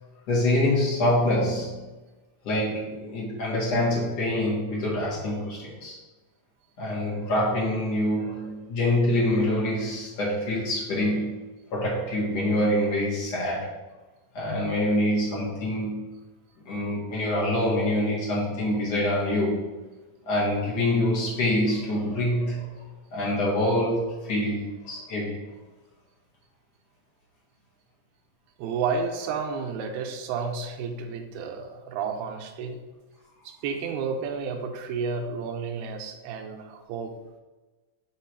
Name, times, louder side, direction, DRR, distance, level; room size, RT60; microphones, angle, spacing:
voice 1, 0.3-1.8 2.4-6.0 6.8-11.3 11.7-13.7 14.3-16.0 16.7-19.7 20.3-22.7 23.1-25.4, left 1 dB, 50° left, -7 dB, 2.5 m, -25 dB
voice 2, 28.6-32.8 33.4-37.1, right 5 dB, 85° right, 4 dB, 2.6 m, -31 dB
6.5 x 3.8 x 4.4 m, 1.2 s
omnidirectional pair, 4.4 m